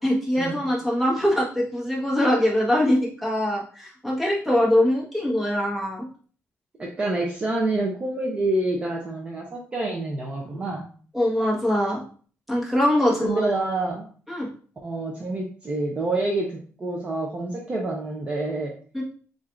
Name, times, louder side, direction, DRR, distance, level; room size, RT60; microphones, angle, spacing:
voice 1, 0.0-6.1 11.1-12.0 12.5-13.5 14.3-14.5 18.9-19.0, left 1 dB, 5° right, -5 dB, 1.2 m, -23 dB
voice 2, 6.8-10.8 13.0-14.1 14.8-18.7, right 2 dB, 20° right, -1 dB, 0.6 m, -27 dB
7.3 x 2.6 x 2.5 m, 0.43 s
cardioid pair, 175°, 5 cm